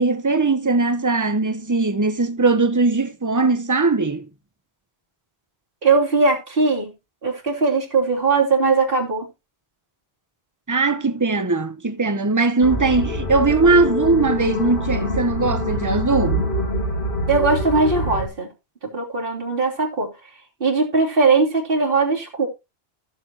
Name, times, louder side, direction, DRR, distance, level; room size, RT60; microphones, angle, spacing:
voice 1, 0.0-4.3 10.7-16.5, right 3 dB, 20° right, 0.8 m, -20 dB
voice 2, 5.8-6.9 7.2-9.3 17.3-18.5 18.9-20.1 20.6-22.5, right 4 dB, 60° right, 2.9 m, -19 dB
sound 1, 12.6-18.3, equal, 55° left, 2.1 m, -25 dB
15.5 x 6.9 x 2.9 m
omnidirectional pair, 1.1 m